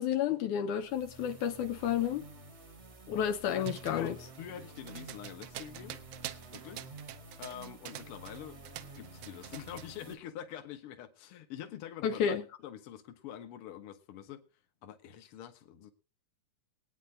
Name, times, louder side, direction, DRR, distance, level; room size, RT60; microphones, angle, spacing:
voice 1, 0.0-2.3 3.1-4.1 12.0-12.4, left 9 dB, 80° left, 2.3 m, -31 dB
sound 1, 0.8-10.1, right 3 dB, 30° right, 1.3 m, -51 dB
sound 2, 3.6-8.4 8.7-9.9, right 13 dB, 75° right, 2.0 m, -45 dB
voice 2, 3.9-6.0 6.5-6.8 7.4-8.6 9.0-12.4 12.6-14.4 14.8-15.9, left 10 dB, 55° left, 1.9 m, -45 dB
23.0 x 9.2 x 2.8 m
omnidirectional pair, 3.5 m